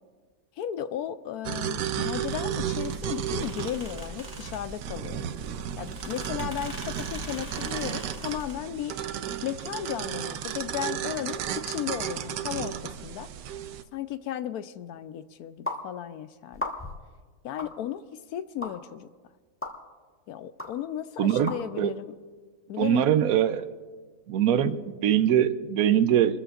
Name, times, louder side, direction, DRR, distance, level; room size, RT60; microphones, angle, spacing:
voice 1, 0.6-5.3 5.8-9.0 9.4-13.3 13.9-16.6 17.4-18.0 18.3-19.1 20.3-22.1 22.7-23.0, left 10 dB, 70° left, 12 dB, 1.0 m, -35 dB
sound 1, 1.4-13.8, right 9 dB, 90° right, 1.3 m, -34 dB
sound 2, 2.1-8.5, left 1 dB, 15° right, 1.5 m, -42 dB
sound 3, 15.7-15.8 16.5-17.0 17.6-17.7 18.6-18.7 19.6-19.7 20.6-20.7 21.5-21.6, left 1 dB, 10° left, 1.1 m, -33 dB
voice 2, 21.2-21.9 22.8-23.7 24.3-26.4, right 10 dB, 70° right, 12 dB, 1.0 m, -23 dB
28.5 x 14.0 x 2.5 m, 1.5 s
omnidirectional pair, 1.8 m